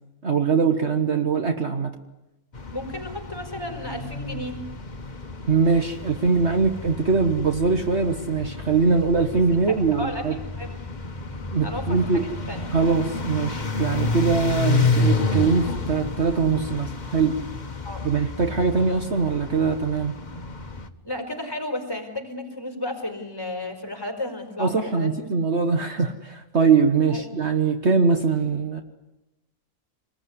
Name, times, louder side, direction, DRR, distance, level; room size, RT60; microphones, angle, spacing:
voice 1, 0.2-1.9 5.5-10.4 11.5-12.3 12.7-17.4 18.0-20.1 24.6-28.8, right 5 dB, 50° right, 5 dB, 1.7 m, -22 dB
sound 1, 2.5-20.9, left 3 dB, 30° left, 1.4 m, -30 dB
voice 2, 2.7-4.6 9.3-9.4 9.7-10.7 11.6-12.2 12.5-12.6 17.8-18.0 21.0-25.3 27.1-27.2, left 1 dB, 15° left, 3 dB, 4.9 m, -33 dB
26.0 x 21.0 x 9.8 m, 0.95 s
omnidirectional pair, 1.6 m